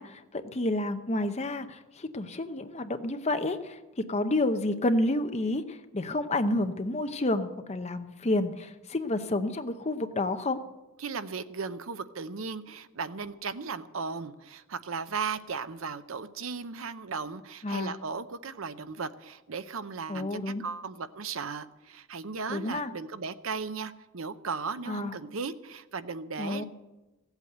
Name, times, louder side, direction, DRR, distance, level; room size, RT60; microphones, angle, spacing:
voice 1, 0.0-10.6 17.6-17.9 20.1-20.6 22.5-22.9 24.9-25.1 26.4-26.6, left 1 dB, 30° left, 8 dB, 0.8 m, -30 dB
voice 2, 11.0-26.6, right 5 dB, 65° right, 12 dB, 0.7 m, -36 dB
16.0 x 8.2 x 7.9 m, 1.1 s
head